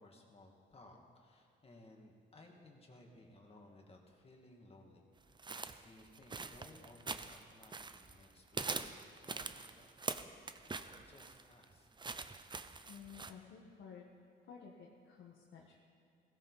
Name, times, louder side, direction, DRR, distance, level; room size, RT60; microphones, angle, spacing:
voice 1, 0.0-5.1 5.5-11.9, left 2 dB, 30° left, 1 dB, 2.4 m, -60 dB
sound 1, 5.4-8.2 8.5-13.3, right 4 dB, 25° right, 0.7 m, -44 dB
voice 2, 12.9-14.1 14.4-15.8, left 6 dB, 80° left, -3 dB, 1.6 m, -54 dB
16.5 x 16.5 x 4.2 m, 2.5 s
cardioid pair, 90°, 20 cm